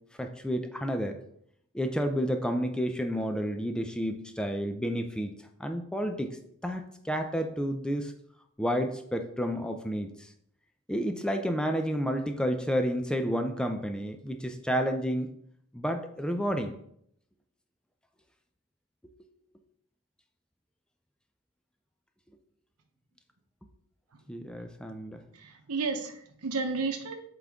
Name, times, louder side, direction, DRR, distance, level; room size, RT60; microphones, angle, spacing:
voice 1, 0.2-1.2 1.7-8.1 8.6-10.3 10.9-15.3 15.7-16.8 24.3-25.2, equal, 5° left, 5 dB, 0.4 m, -30 dB
voice 2, 25.3-27.2, right 4 dB, 85° right, 6 dB, 0.9 m, -32 dB
7.8 x 3.7 x 3.5 m, 0.70 s
head